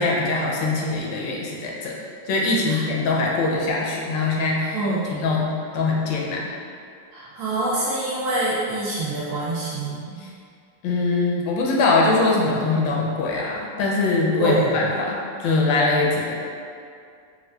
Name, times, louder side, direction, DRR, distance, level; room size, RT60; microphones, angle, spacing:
voice 1, 0.0-2.0 2.3-4.8 5.1-6.4 10.2-10.3 10.8-16.3, left 3 dB, 80° left, -3 dB, 1.3 m, -22 dB
voice 2, 4.7-5.0 7.1-10.2 14.3-14.9, right 2 dB, 70° right, -7 dB, 1.0 m, -26 dB
4.2 x 2.4 x 2.3 m, 2.3 s
omnidirectional pair, 2.0 m